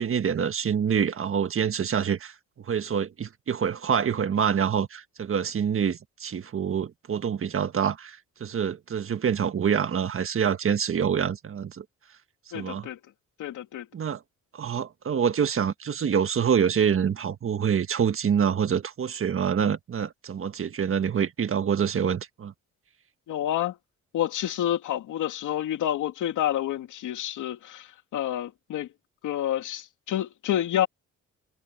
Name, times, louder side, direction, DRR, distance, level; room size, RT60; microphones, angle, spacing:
voice 1, 0.0-11.8 12.5-12.9 13.9-14.2 14.5-22.5, right 7 dB, 45° right, 1.6 m, -26 dB
voice 2, 12.5-13.0 13.4-13.9 23.3-23.8 24.1-28.9 29.2-30.9, left 11 dB, 80° left, 2.5 m, -29 dB
cardioid pair, 90°, 30 cm